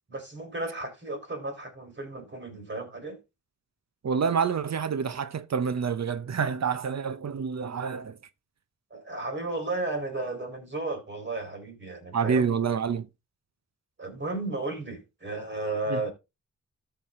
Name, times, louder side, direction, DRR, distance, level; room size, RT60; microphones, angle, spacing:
voice 1, 0.1-3.2 8.9-12.5 14.0-16.1, right 2 dB, 35° right, 4.3 m, -34 dB
voice 2, 4.0-8.2 12.1-13.1 15.9-16.0, right 6 dB, 55° right, 0.8 m, -27 dB
13.5 x 4.8 x 3.7 m
wide cardioid pair, 80°, 32 cm